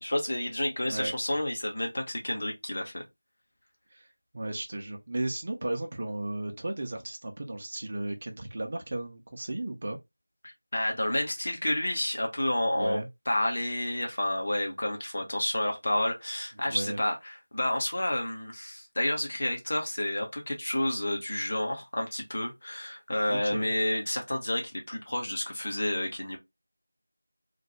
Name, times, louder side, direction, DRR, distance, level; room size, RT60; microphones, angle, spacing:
voice 1, 0.0-3.0 10.4-13.0 13.3-26.4, left 1 dB, 40° left, 0.8 m, -30 dB
voice 2, 3.9-10.0 12.7-13.1 16.6-17.0 23.3-23.7, right 1 dB, 30° right, 0.4 m, -35 dB
2.3 x 2.0 x 2.8 m
figure-of-eight pair, 170°, 0 cm